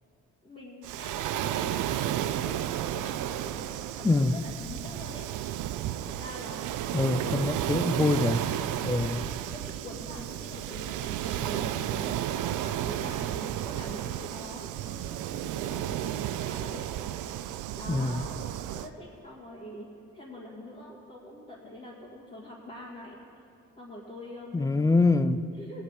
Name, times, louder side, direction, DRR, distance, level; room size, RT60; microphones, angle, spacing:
voice 1, 0.4-5.3 6.0-7.6 8.7-12.1 12.5-16.9 17.7-18.3 18.7-23.2 23.8-24.9 25.5-25.8, left 1 dB, 25° left, -7 dB, 2.2 m, -44 dB
Waves surf, 0.8-18.9, right 12 dB, 85° right, 0.5 m, -33 dB
voice 2, 4.0-4.4 6.9-8.4 8.8-9.2 17.9-18.3 24.5-25.4, left 3 dB, 10° left, 13 dB, 0.4 m, -25 dB
17.0 x 7.9 x 4.9 m, 2.7 s
cardioid pair, 90°, 30 cm